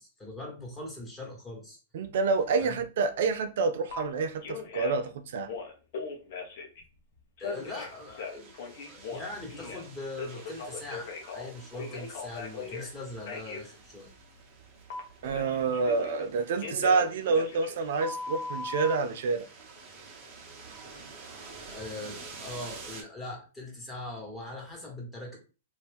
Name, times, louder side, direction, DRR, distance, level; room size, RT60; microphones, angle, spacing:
voice 1, 0.0-1.8 2.6-2.7 7.4-14.1 21.6-25.4, left 2 dB, 10° left, 1.5 m, -41 dB
voice 2, 1.9-5.5 15.2-19.5, right 4 dB, 65° right, 0.4 m, -28 dB
Telephone, 3.9-4.0 4.4-5.1 5.4-6.8 7.4-9.9 10.2-12.9 13.3-13.6 14.9-16.3 16.6-19.0, left 4 dB, 60° left, 0.9 m, -38 dB
sound 1, 7.5-23.0, right 4 dB, 40° right, 1.0 m, -49 dB
2.8 x 2.6 x 3.5 m
hypercardioid pair, 115°, 0 cm